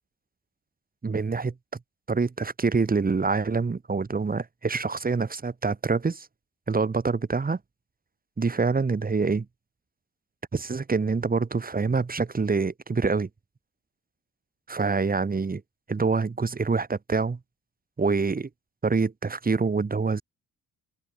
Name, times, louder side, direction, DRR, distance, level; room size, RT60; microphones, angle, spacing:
voice 1, 1.0-1.5 2.1-6.3 6.7-7.6 8.4-9.4 10.5-13.3 14.7-15.6 15.9-17.4 18.0-18.5 18.8-20.2, right 4 dB, 30° right, 5.1 m, -26 dB
open air
cardioid pair, 90°, 30 cm